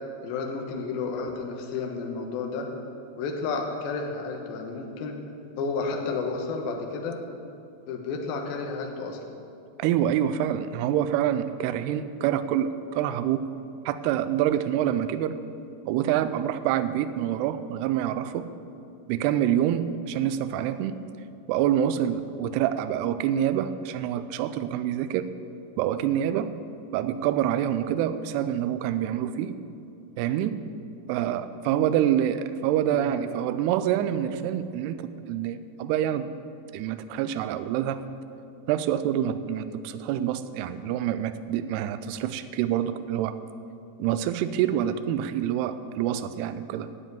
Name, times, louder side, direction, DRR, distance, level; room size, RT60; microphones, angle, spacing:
voice 1, 0.2-2.7 3.2-5.2 5.6-7.2 7.9-9.4 32.9-33.1, left 4 dB, 75° left, 2 dB, 2.7 m, -31 dB
voice 2, 9.8-13.5 13.9-15.4 15.9-18.5 19.1-21.0 21.5-25.3 25.8-26.5 26.9-29.5 30.2-30.6 31.1-36.3 36.7-38.0 38.7-43.4 44.0-46.9, right 10 dB, 85° right, 12 dB, 2.5 m, -26 dB
10.0 x 7.6 x 9.3 m, 2.6 s
omnidirectional pair, 4.8 m